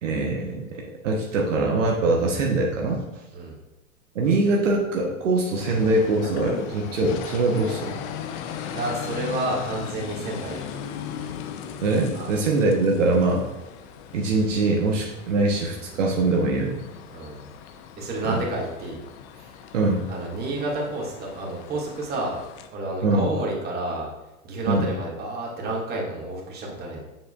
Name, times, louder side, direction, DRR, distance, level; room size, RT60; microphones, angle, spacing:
voice 1, 0.0-3.0 4.1-7.9 11.8-13.4 14.1-16.8 18.3-18.4 19.7-20.0 23.0-23.3 24.7-24.9, right 2 dB, 65° right, 0 dB, 1.1 m, -23 dB
sound 1, 5.5-22.7, left 8 dB, 25° left, 0.4 m, -38 dB
voice 2, 8.7-10.8 12.1-12.4 17.1-17.5 18.0-19.0 19.4-19.5 20.1-22.4 22.7-24.1 24.4-27.0, right 2 dB, 25° right, -3 dB, 2.1 m, -30 dB
7.6 x 6.8 x 2.4 m, 0.99 s
figure-of-eight pair, 100°, 41 cm